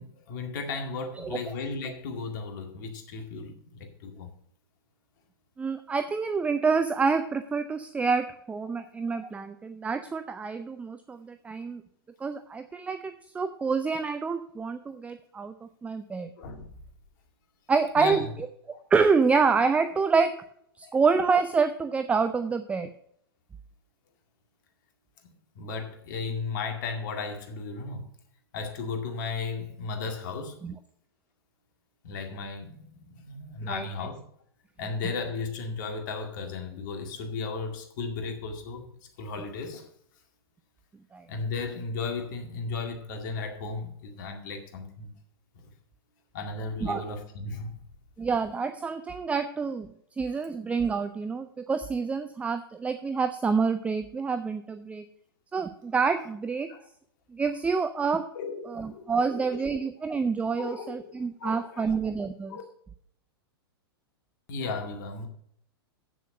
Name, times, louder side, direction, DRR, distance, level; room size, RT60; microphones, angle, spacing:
voice 1, 0.0-4.3 16.4-16.7 18.0-18.3 18.7-18.8 20.8-21.0 25.6-28.0 28.5-30.6 32.0-34.2 34.8-38.9 39.2-39.9 41.3-45.1 45.5-45.7 46.3-47.7 56.7-56.8 58.3-59.6 60.6-61.9 62.5-62.6 64.5-65.3, left 4 dB, 50° left, 2.1 m, -35 dB
voice 2, 1.2-1.5 5.6-11.8 12.2-16.3 17.7-18.2 18.9-20.3 20.8-22.9 30.6-30.7 33.6-33.9 41.1-41.2 46.8-47.0 48.2-55.0 55.5-56.7 57.3-58.3 58.7-62.6, right 5 dB, 10° right, 0.5 m, -27 dB
8.5 x 7.1 x 6.5 m
figure-of-eight pair, 105°, 13 cm